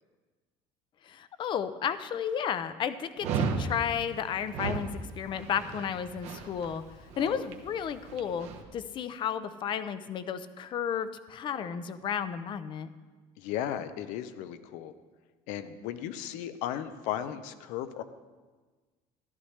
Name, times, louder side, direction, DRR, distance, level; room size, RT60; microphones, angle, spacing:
voice 1, 1.0-4.9 5.2-6.8 7.2-12.9, left 8 dB, 40° left, 12 dB, 0.6 m, -33 dB
Dog, 3.2-8.6, right 5 dB, 65° right, 1.2 m, -35 dB
voice 2, 13.4-14.9 15.5-18.0, left 10 dB, 80° left, 11 dB, 0.7 m, -36 dB
14.5 x 11.5 x 3.3 m, 1.3 s
cardioid pair, 130°, 12 cm